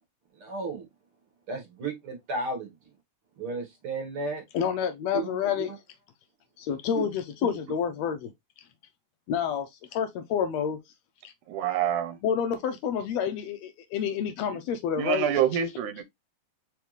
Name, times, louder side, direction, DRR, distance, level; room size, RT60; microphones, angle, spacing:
voice 1, 0.4-0.8 1.5-2.7 3.4-4.4 5.1-5.3 5.6-5.7 7.0-7.1, right 3 dB, 55° right, 1.9 m, -33 dB
voice 2, 4.5-5.7 6.6-8.3 9.3-10.8 12.2-15.3, left 8 dB, 75° left, 1.6 m, -29 dB
voice 3, 11.5-12.2 14.5-14.6 15.0-16.0, right 9 dB, 80° right, 2.1 m, -26 dB
4.8 x 3.5 x 3.0 m
omnidirectional pair, 3.5 m